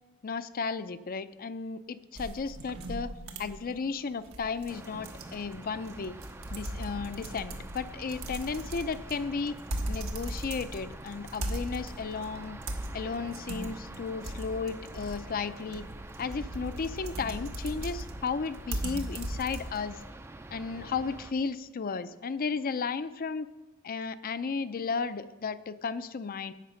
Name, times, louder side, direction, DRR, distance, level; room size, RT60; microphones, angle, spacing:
voice 1, 0.2-3.1 3.4-6.1 6.5-9.6 9.9-12.6 12.9-15.8 16.2-20.0 20.5-23.5 23.8-26.5, left 5 dB, 45° left, 13 dB, 0.5 m, -34 dB
sound 1, 2.2-20.1, right 1 dB, 85° right, 1.4 m, -39 dB
sound 2, 4.7-21.3, right 2 dB, 10° right, 0.4 m, -46 dB
11.0 x 8.5 x 5.6 m, 1.1 s
head